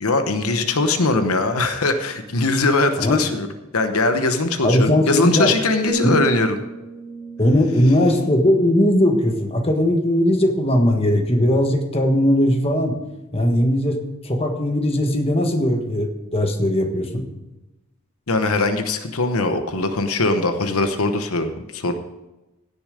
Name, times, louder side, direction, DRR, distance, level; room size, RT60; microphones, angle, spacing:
voice 1, 0.0-3.5 3.7-6.6 18.3-21.9, left 2 dB, 85° left, 7 dB, 1.0 m, -21 dB
voice 2, 4.6-5.5 6.0-6.1 7.4-13.0 13.3-14.0 14.2-17.2, left 1 dB, 25° left, 4 dB, 1.4 m, -19 dB
sound 1, 5.9-9.8 10.3-10.6, right 3 dB, 20° right, 2.4 m, -33 dB
16.5 x 6.9 x 5.0 m, 1.0 s
head